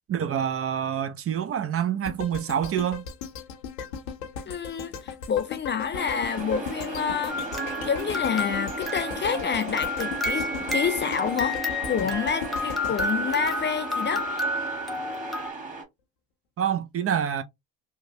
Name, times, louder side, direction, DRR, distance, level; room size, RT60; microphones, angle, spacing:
voice 1, 0.1-3.0 16.6-17.4, right 9 dB, 35° right, 0.5 m, -27 dB
sound 1, 2.0-14.2 14.6-14.7, left 6 dB, 85° left, 0.7 m, -38 dB
voice 2, 4.5-7.4 7.8-14.3, left 7 dB, 30° left, 0.4 m, -28 dB
sound 2, 5.9-15.8, right 3 dB, 20° right, 1.7 m, -36 dB
sound 3, 7.3-15.5, left 1 dB, ahead, 1.0 m, -31 dB
2.9 x 2.2 x 2.7 m
hypercardioid pair, 65°, 42 cm